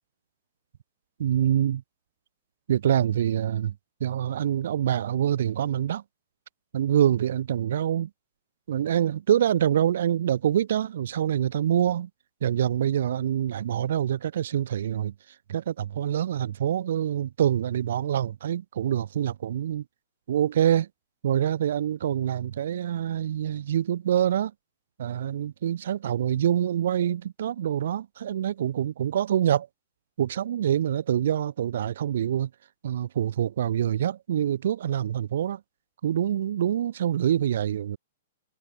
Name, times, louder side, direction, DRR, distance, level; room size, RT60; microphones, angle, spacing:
voice 1, 1.2-1.8 2.7-3.7 4.0-6.0 6.7-8.1 8.7-12.1 12.4-15.1 15.5-19.8 20.3-20.9 21.2-24.5 25.0-29.7 30.2-32.5 32.8-35.6 36.0-38.0, right 10 dB, 70° right, 0.9 m, -25 dB
hypercardioid pair, 140°, 0 cm